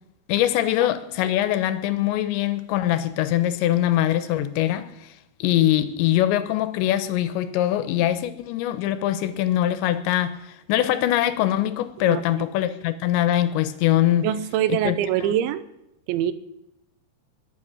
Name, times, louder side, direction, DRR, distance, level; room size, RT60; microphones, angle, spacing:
voice 1, 0.3-4.9 5.4-14.3 14.7-15.3, left 13 dB, 90° left, 11 dB, 3.1 m, -23 dB
voice 2, 12.0-12.4 14.2-15.6 16.1-16.3, right 11 dB, 85° right, 14 dB, 3.1 m, -24 dB
21.0 x 8.9 x 6.1 m, 0.85 s
omnidirectional pair, 5.2 m